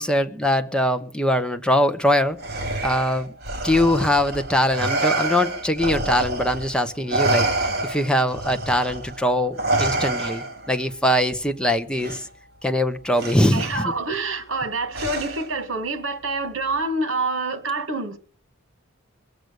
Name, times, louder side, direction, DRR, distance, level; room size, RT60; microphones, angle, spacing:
voice 1, 0.0-2.4 2.8-3.3 3.6-12.3 12.6-13.9, left 1 dB, 5° left, 0.9 m, -22 dB
Respiratory sounds, 2.4-6.7 7.1-10.7 12.0-12.2 13.2-13.7 14.9-15.6, right 2 dB, 50° right, 3.8 m, -27 dB
voice 2, 13.5-18.2, right 2 dB, 65° right, 2.0 m, -27 dB
21.5 x 8.1 x 6.5 m
head